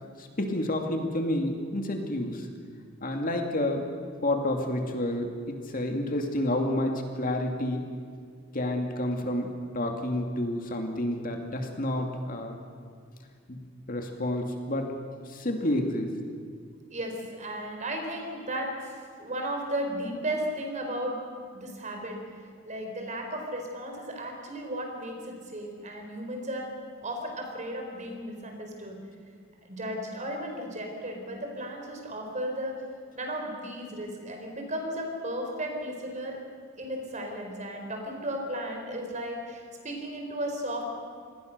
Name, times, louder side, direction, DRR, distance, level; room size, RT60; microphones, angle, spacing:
voice 1, 0.2-2.5 3.0-3.8 4.2-7.8 8.5-12.6 13.5-13.6 13.9-15.0 15.3-16.1, left 1 dB, 45° left, 3 dB, 2.4 m, -29 dB
voice 2, 16.9-21.2 21.5-22.2 22.6-26.7 27.0-29.0 29.6-32.8 33.1-36.4 36.8-40.8, right 1 dB, 35° right, 3 dB, 4.6 m, -35 dB
27.0 x 20.0 x 6.7 m, 2.2 s
head